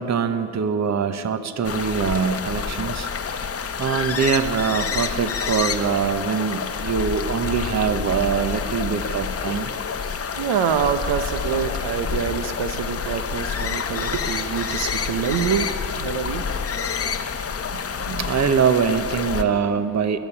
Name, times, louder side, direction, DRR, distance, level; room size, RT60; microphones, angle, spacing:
voice 1, 0.0-3.4 3.8-9.7 14.1-14.2 17.7-20.2, right 6 dB, 40° right, 11 dB, 0.9 m, -23 dB
sound 1, 1.6-19.4, left 6 dB, 35° left, 0.9 m, -28 dB
voice 2, 10.0-16.4, right 7 dB, 70° right, 9 dB, 0.9 m, -26 dB
21.0 x 7.2 x 8.6 m, 3.0 s
supercardioid pair, 65°, 43 cm